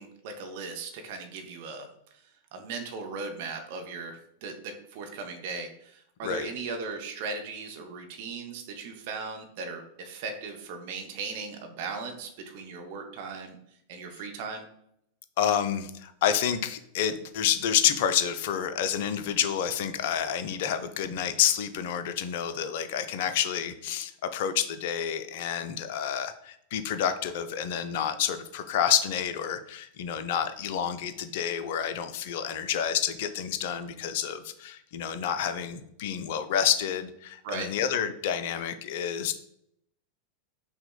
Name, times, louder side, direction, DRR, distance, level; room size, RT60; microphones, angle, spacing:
voice 1, 0.0-1.9 2.5-13.6 13.9-14.7 37.4-37.7, right 4 dB, 50° right, 5 dB, 0.6 m, -38 dB
voice 2, 15.4-39.3, left 9 dB, 50° left, 10 dB, 0.3 m, -29 dB
5.6 x 2.1 x 2.2 m, 0.72 s
figure-of-eight pair, 90°, 0 cm